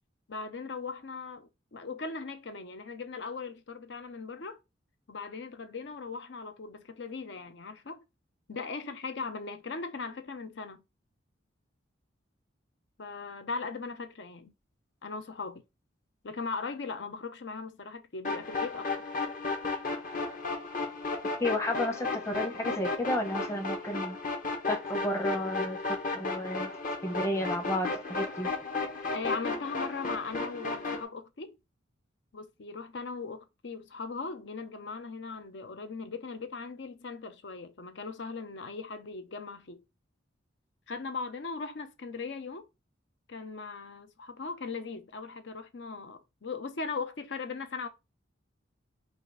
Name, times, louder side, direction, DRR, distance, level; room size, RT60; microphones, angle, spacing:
voice 1, 0.3-4.6 5.1-8.0 8.5-10.8 13.0-14.5 15.0-15.6 16.2-18.9 29.1-31.6 32.3-39.8 40.9-42.7 43.3-47.9, left 4 dB, 65° left, 0.7 m, -39 dB
sound 1, 18.2-31.0, left 3 dB, 45° left, 1.0 m, -34 dB
voice 2, 21.4-24.2 24.7-25.8 26.1-26.7 27.0-28.5, left 1 dB, 15° left, 0.9 m, -32 dB
5.0 x 2.5 x 4.0 m
head